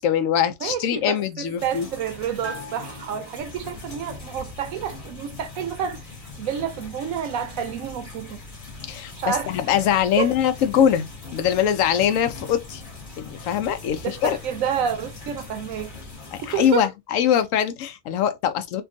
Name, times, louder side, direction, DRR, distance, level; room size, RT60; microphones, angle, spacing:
voice 1, 0.0-1.9 8.9-12.8 13.2-14.4 16.5-18.8, left 9 dB, 75° left, 1.0 m, -22 dB
voice 2, 0.6-6.1 6.4-8.4 9.2-9.9 10.2-10.3 14.0-15.9 16.4-16.9, right 8 dB, 80° right, 1.1 m, -29 dB
sound 1, 1.6-16.8, left 3 dB, 40° left, 1.2 m, -42 dB
Bell, 2.4-4.1, right 1 dB, 60° right, 0.9 m, -41 dB
Mechanical fan, 3.4-16.1, left 4 dB, 5° right, 0.7 m, -45 dB
3.4 x 2.3 x 2.6 m
omnidirectional pair, 1.4 m